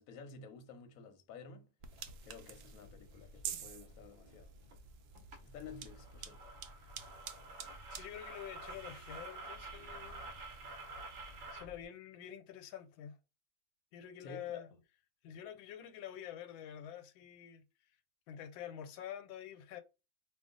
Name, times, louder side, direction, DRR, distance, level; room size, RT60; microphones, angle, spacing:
voice 1, 0.0-1.7 2.2-4.5 5.4-6.5 14.2-14.7, left 5 dB, 60° left, 0.9 m, -52 dB
sound 1, 1.8-11.9, equal, 25° right, 0.8 m, -57 dB
sound 2, 1.8-11.5, right 9 dB, 80° right, 0.8 m, -51 dB
sound 3, 2.1-2.3 4.7-4.8 5.2-5.4 5.7-11.7, right 3 dB, 55° right, 1.0 m, -49 dB
voice 2, 7.9-10.3 11.5-13.2 13.9-14.7 15.2-17.9 18.3-19.8, left 10 dB, 90° left, 1.4 m, -47 dB
3.0 x 2.3 x 3.7 m
omnidirectional pair, 2.1 m